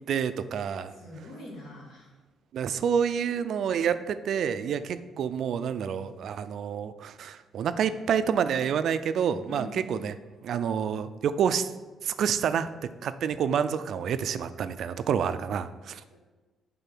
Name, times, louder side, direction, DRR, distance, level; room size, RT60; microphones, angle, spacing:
voice 1, 0.0-0.9 2.5-10.2 10.4-11.7 12.0-12.7 13.0-16.0, right 7 dB, 70° right, 12 dB, 0.3 m, -28 dB
voice 2, 0.9-2.1 9.5-10.0 16.1-16.2, equal, 80° left, -3 dB, 1.9 m, -44 dB
5.6 x 3.8 x 5.9 m, 1.2 s
cardioid pair, 90°, 0 cm